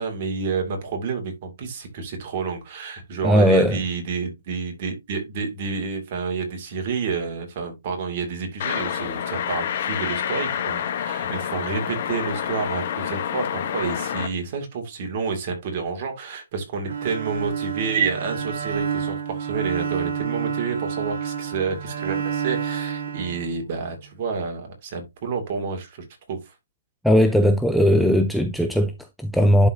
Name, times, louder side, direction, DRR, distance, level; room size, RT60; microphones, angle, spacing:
voice 1, 0.0-26.5, right 5 dB, 35° right, 2.6 m, -29 dB
voice 2, 3.2-3.8 27.0-29.7, equal, ahead, 0.4 m, -18 dB
sound 1, 8.6-14.3, left 9 dB, 45° left, 1.2 m, -28 dB
Bowed string instrument, 16.8-24.0, right 7 dB, 60° right, 1.6 m, -29 dB
11.0 x 4.3 x 2.8 m
hypercardioid pair, 160°, 0 cm